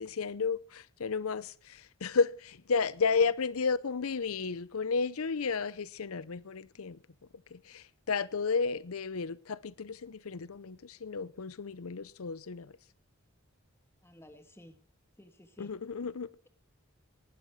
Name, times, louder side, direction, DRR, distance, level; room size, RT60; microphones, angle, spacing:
voice 1, 0.0-7.0 7.5-12.7 15.6-16.3, left 5 dB, 90° left, 0.7 m, -32 dB
voice 2, 14.0-14.8 15.2-15.7, left 1 dB, 10° left, 1.6 m, -54 dB
19.0 x 12.5 x 4.7 m
head